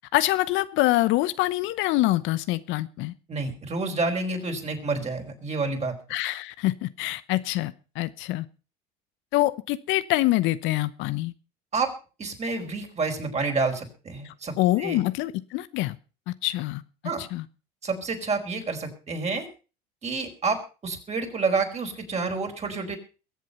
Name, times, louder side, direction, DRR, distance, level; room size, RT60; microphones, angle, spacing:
voice 1, 0.1-3.1 6.1-8.5 9.3-11.3 14.2-16.0 16.4-16.8 17.2-17.5, left 17 dB, 65° left, 0.9 m, -25 dB
voice 2, 3.3-5.9 11.7-11.9 12.2-15.0 17.0-17.2 17.8-19.5 20.0-23.0, right 4 dB, 30° right, 4.8 m, -29 dB
22.0 x 7.6 x 5.6 m
hypercardioid pair, 80°, 21 cm